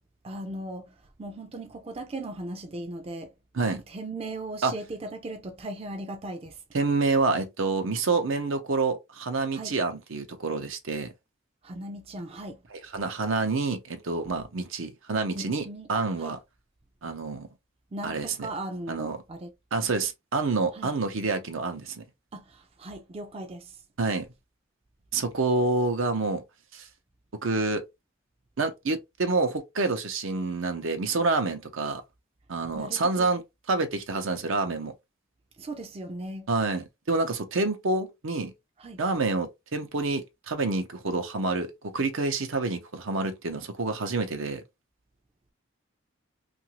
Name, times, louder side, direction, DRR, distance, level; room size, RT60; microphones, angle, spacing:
voice 1, 0.2-0.8 1.2-3.3 3.7-6.6 9.5-9.7 11.6-12.6 15.3-15.9 16.2-16.4 17.9-19.5 20.7-20.9 22.3-23.7 32.7-33.3 35.6-36.5 38.8-39.0, right 1 dB, 30° right, 0.4 m, -38 dB
voice 2, 6.7-11.1 12.7-16.4 17.0-17.5 18.0-18.5 18.9-19.2 19.7-22.0 24.0-24.3 25.1-26.4 26.7-26.9 27.4-27.8 28.6-32.0 32.5-33.4 33.7-34.9 36.5-38.5 39.0-44.6, right 3 dB, 80° right, 0.7 m, -28 dB
2.8 x 2.5 x 2.9 m
head